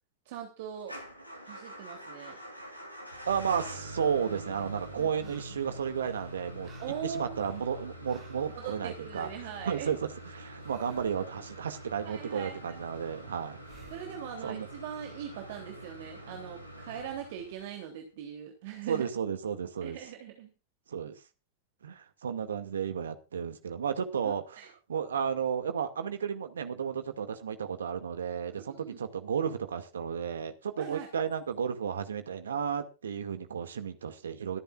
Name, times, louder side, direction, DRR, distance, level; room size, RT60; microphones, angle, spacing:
voice 1, 0.2-0.9 1.4-2.4 5.0-5.3 6.8-7.4 8.5-9.9 12.0-12.8 13.9-19.1 19.8-20.5 24.2-24.7 28.5-29.0 30.8-31.1, right 8 dB, 50° right, 3 dB, 3.2 m, -41 dB
Motor vehicle (road) / Engine starting / Idling, 0.8-17.8, right 1 dB, 90° right, 3.2 m, -45 dB
voice 2, 3.3-6.7 7.0-9.3 9.6-13.6 14.4-14.7 18.9-20.0 20.9-21.2 21.8-24.6 24.9-34.6, right 7 dB, 65° right, 8 dB, 2.2 m, -33 dB
sound 1, 5.2-5.7 6.0-8.5 10.6-11.2 13.6-14.1 17.1-17.2, right 7 dB, 25° right, 3.9 m, -58 dB
27.0 x 10.5 x 2.5 m, 0.30 s
figure-of-eight pair, 90°, 0 cm